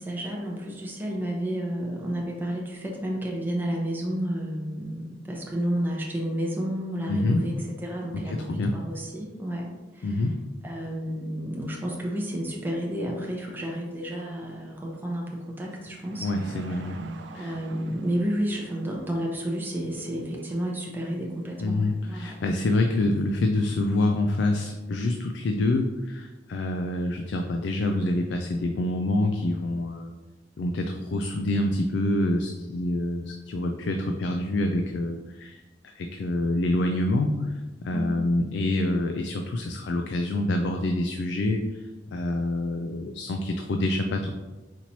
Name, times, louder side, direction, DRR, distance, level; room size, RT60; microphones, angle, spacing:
voice 1, 0.0-7.5 7.8-9.7 9.9-10.2 10.6-16.3 17.3-22.4 37.9-38.2, equal, 10° right, -2 dB, 0.6 m, -31 dB
voice 2, 7.1-7.5 8.1-8.8 10.0-10.4 16.2-17.0 17.4-17.5 21.6-30.1 30.6-41.8 42.1-44.3, left 2 dB, 65° left, 4 dB, 0.3 m, -26 dB
sound 1, 15.6-23.4, right 3 dB, 75° right, 0.4 m, -46 dB
4.2 x 3.0 x 4.1 m, 1.2 s
head